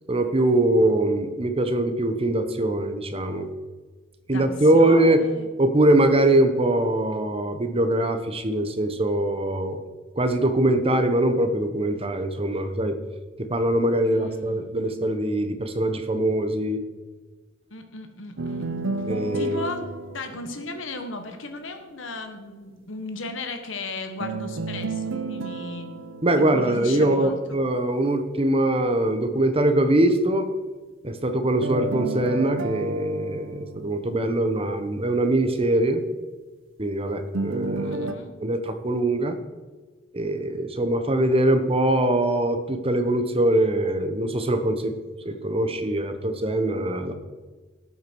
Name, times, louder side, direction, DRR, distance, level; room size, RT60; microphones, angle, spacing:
voice 1, 0.1-3.5 4.3-5.2 5.6-9.8 10.1-13.0 13.4-16.8 19.1-19.7 26.2-30.5 31.0-36.0 36.8-38.1 38.4-39.4 40.1-44.9 45.2-47.1, right 1 dB, 30° right, 9 dB, 0.9 m, -22 dB
voice 2, 4.7-5.5 14.0-14.7 17.7-18.8 19.3-25.9 26.3-27.6 37.8-38.3, left 3 dB, 70° left, 7 dB, 1.4 m, -36 dB
sound 1, 18.4-21.4 24.2-27.4 31.6-34.7 37.3-38.1, right 3 dB, 70° right, 0.8 m, -32 dB
12.5 x 8.3 x 4.6 m, 1.3 s
head